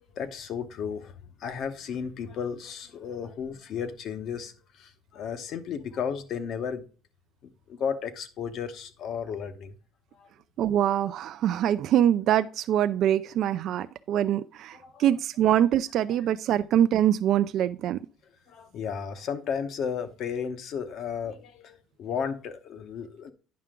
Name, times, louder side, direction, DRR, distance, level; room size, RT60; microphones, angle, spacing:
voice 1, 0.1-6.9 7.4-9.8 10.1-10.3 14.7-15.1 18.5-23.3, left 7 dB, 50° left, 1.0 m, -34 dB
voice 2, 10.6-18.0, right 11 dB, 55° right, 0.4 m, -24 dB
9.5 x 5.7 x 3.7 m
cardioid pair, 130°, 0 cm